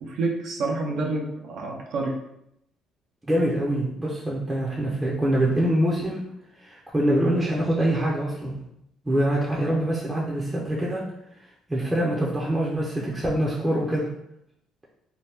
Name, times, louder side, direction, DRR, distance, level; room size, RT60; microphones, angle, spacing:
voice 1, 0.0-2.2, right 3 dB, 70° right, 0 dB, 0.5 m, -28 dB
voice 2, 3.3-6.3 6.6-8.6 9.1-11.1 11.7-14.1, right 1 dB, 15° right, -5 dB, 0.5 m, -24 dB
2.8 x 2.1 x 3.4 m, 0.79 s
cardioid pair, 115°, 0 cm